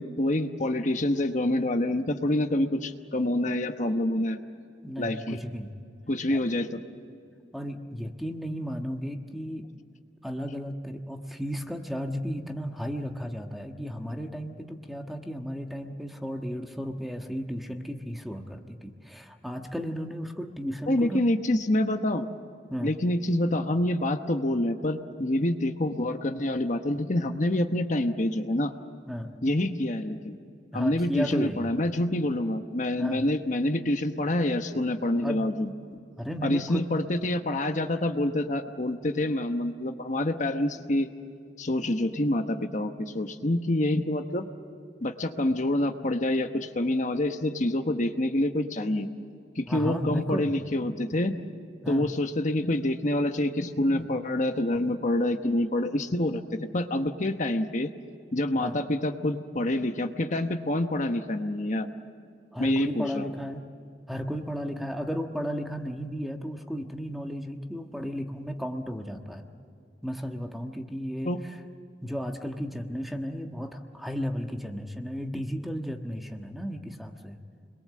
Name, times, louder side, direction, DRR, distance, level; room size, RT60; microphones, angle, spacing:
voice 1, 0.0-4.4 5.0-5.4 6.1-6.8 20.9-22.3 22.8-28.7 29.4-30.3 30.7-35.7 36.4-41.1 41.6-44.5 45.0-49.1 49.5-51.3 51.9-57.9 58.3-61.9 62.6-63.3 71.2-71.4, left 1 dB, 45° left, 6 dB, 1.1 m, -27 dB
voice 2, 4.8-5.8 6.3-6.4 7.5-9.7 10.2-21.2 22.7-23.0 29.1-29.3 30.7-31.7 33.0-33.3 35.2-35.4 36.2-36.9 49.7-50.5 51.8-52.1 58.6-58.8 62.5-63.7 64.1-69.5 70.0-71.6 72.0-77.4, equal, ahead, 4 dB, 1.4 m, -34 dB
29.5 x 22.0 x 7.7 m, 2.4 s
head